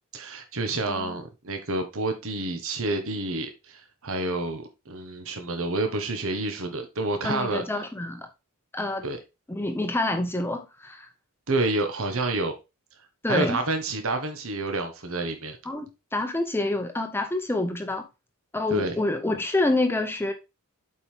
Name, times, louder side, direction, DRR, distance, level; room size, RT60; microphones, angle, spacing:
voice 1, 0.1-7.6 9.0-9.2 11.5-12.5 13.3-15.6 18.7-18.9, right 2 dB, 65° right, 1.4 m, -29 dB
voice 2, 0.8-1.2 7.2-8.3 8.7-9.0 9.5-11.1 13.2-13.6 15.7-18.0 18.5-20.3, left 2 dB, 10° left, 0.8 m, -27 dB
8.1 x 4.7 x 3.5 m
head